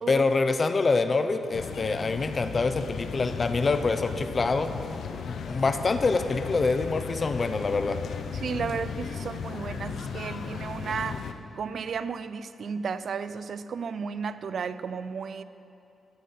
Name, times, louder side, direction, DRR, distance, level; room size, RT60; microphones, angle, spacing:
voice 1, 0.1-4.7 5.1-8.0, left 3 dB, 35° left, 9 dB, 0.6 m, -26 dB
sound 1, 1.5-11.3, left 6 dB, 70° left, 0.7 m, -36 dB
voice 2, 8.3-15.4, right 6 dB, 55° right, 14 dB, 0.4 m, -33 dB
14.0 x 8.4 x 5.5 m, 2.8 s
cardioid pair, 120°, 0 cm